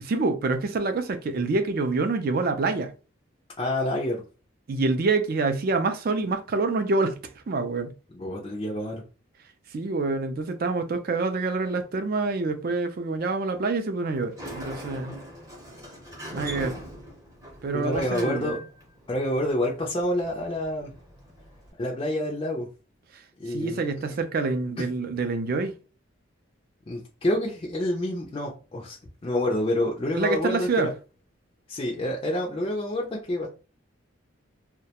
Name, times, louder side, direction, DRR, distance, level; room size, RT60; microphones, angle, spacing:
voice 1, 0.1-2.9 4.7-7.2 7.5-7.9 9.7-15.2 16.3-16.8 17.6-18.6 23.1-23.2 23.5-25.7 30.1-30.9, right 3 dB, 45° right, 0.3 m, -26 dB
voice 2, 3.6-4.2 8.1-9.0 17.7-18.6 19.1-20.9 21.8-22.7 23.4-23.8 24.8-24.9 26.9-29.0 29.2-30.9 31.7-33.5, left 1 dB, 25° left, 0.4 m, -28 dB
Sliding door, 14.1-21.7, equal, 15° right, 0.7 m, -41 dB
2.2 x 2.1 x 2.8 m
head